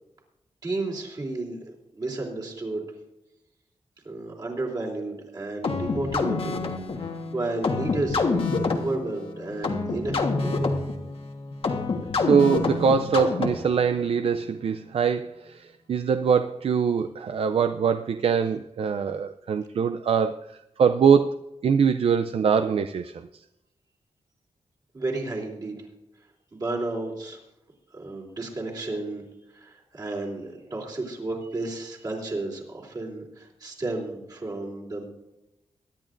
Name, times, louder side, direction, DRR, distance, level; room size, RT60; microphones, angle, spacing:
voice 1, 0.6-1.6 1.9-2.8 4.0-6.6 7.3-10.5 24.9-25.8 26.5-27.4 27.9-29.2 29.5-35.0, right 2 dB, 35° right, -2 dB, 3.2 m, -32 dB
sound 1, 5.6-13.8, left 4 dB, 60° left, 1.3 m, -27 dB
voice 2, 12.2-20.4 20.8-21.3 21.6-23.1, right 6 dB, 65° right, 9 dB, 0.4 m, -23 dB
22.5 x 11.0 x 2.5 m, 0.93 s
wide cardioid pair, 155°, 11 cm